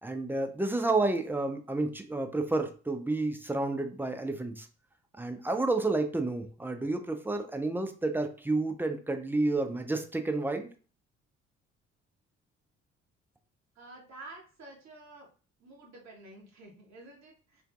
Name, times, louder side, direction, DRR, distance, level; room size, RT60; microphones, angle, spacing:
voice 1, 0.0-4.7 5.2-10.7, right 2 dB, 5° right, 6 dB, 0.5 m, -30 dB
voice 2, 13.7-15.3 15.6-17.6, right 2 dB, 50° right, -3 dB, 1.4 m, -50 dB
4.5 x 2.6 x 2.3 m, 0.38 s
hypercardioid pair, 45°, 35 cm